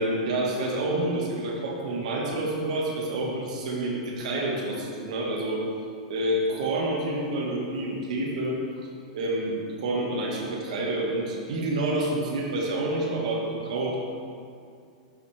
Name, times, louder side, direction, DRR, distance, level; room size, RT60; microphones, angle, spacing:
voice 1, 0.0-5.6 6.1-8.9 9.1-14.0, right 1 dB, 70° right, -1 dB, 1.6 m, -28 dB
11.5 x 4.2 x 3.4 m, 2.3 s
supercardioid pair, 150°, 4 cm